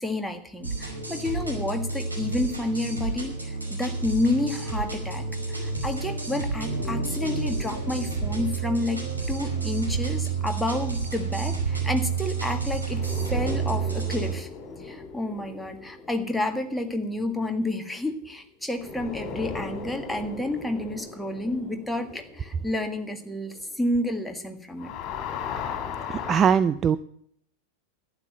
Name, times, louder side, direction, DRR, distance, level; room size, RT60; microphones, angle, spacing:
voice 1, 0.0-9.0 9.3-14.5 14.8-24.9, left 2 dB, 5° left, 4 dB, 1.8 m, -30 dB
sound 1, 0.6-14.3, right 5 dB, 80° right, 5.1 m, -30 dB
sound 2, 6.6-11.1 12.9-18.3 18.7-24.4 24.7-26.4, left 5 dB, 35° left, 3.0 m, -38 dB
voice 2, 26.1-27.0, right 7 dB, 25° right, 13 dB, 0.5 m, -21 dB
12.0 x 9.3 x 8.0 m, 0.66 s
figure-of-eight pair, 90°, 0 cm